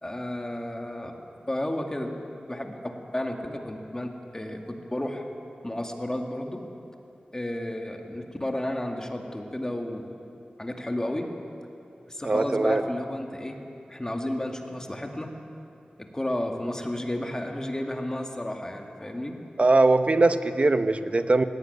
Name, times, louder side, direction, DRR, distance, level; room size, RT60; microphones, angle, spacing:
voice 1, 0.0-1.1 1.5-5.2 5.6-6.6 7.3-10.1 10.6-11.3 12.1-13.6 13.9-15.3 16.0-19.4, left 1 dB, 20° left, 3 dB, 2.2 m, -32 dB
voice 2, 12.2-12.8 19.6-21.4, right 2 dB, 45° right, 10 dB, 1.0 m, -21 dB
18.5 x 17.5 x 9.6 m, 2.7 s
wide cardioid pair, 70°, 3 cm